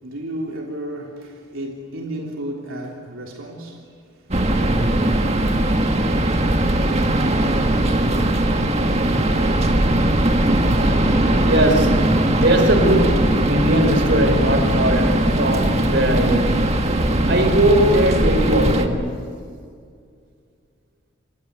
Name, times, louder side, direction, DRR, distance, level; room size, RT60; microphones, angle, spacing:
voice 1, 0.0-4.8, right 1 dB, 75° right, 3.3 m, -33 dB
sound 1, 4.3-18.9, right 1 dB, 30° right, 1.8 m, -19 dB
voice 2, 11.4-16.7 17.3-19.3, right 1 dB, 55° right, 4.4 m, -20 dB
28.0 x 23.5 x 8.1 m
head